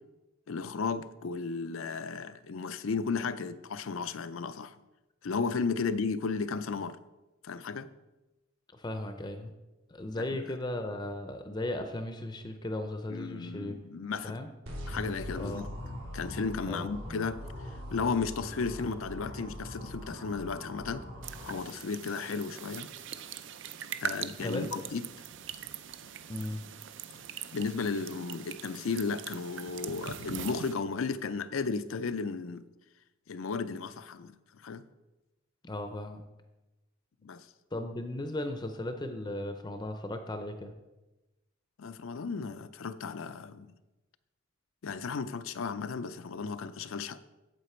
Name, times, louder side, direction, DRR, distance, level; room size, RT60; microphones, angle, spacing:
voice 1, 0.5-4.8 5.2-7.0 7.4-7.9 10.2-10.3 13.1-14.4 14.9-15.7 16.1-17.4 17.9-21.1 21.4-22.9 24.0-25.1 27.5-32.6 33.3-34.8 37.2-37.5 41.8-43.7 44.8-47.2, left 4 dB, 85° left, 13 dB, 0.5 m, -34 dB
voice 2, 8.7-9.5 9.9-13.7 14.2-14.5 15.4-15.7 16.7-17.0 24.4-24.7 26.3-26.6 35.6-36.2 37.7-40.7, left 1 dB, 20° left, 7 dB, 0.5 m, -36 dB
sound 1, 14.7-21.5, equal, 85° right, 3.6 m, -41 dB
sound 2, 21.2-30.7, right 8 dB, 60° right, 0.5 m, -42 dB
8.2 x 7.7 x 4.4 m, 1.0 s
head